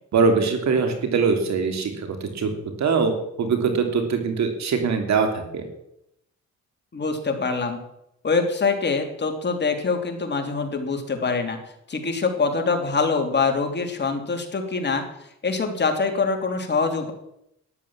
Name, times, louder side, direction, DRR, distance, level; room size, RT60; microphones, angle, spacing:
voice 1, 0.1-2.5 2.8-3.1 3.4-5.6, right 5 dB, 65° right, 6 dB, 3.3 m, -22 dB
voice 2, 6.9-7.8 8.2-11.6 11.9-15.0 15.4-17.1, left 4 dB, 35° left, 4 dB, 3.3 m, -24 dB
13.0 x 11.0 x 7.5 m, 0.78 s
cardioid pair, 90°, 30 cm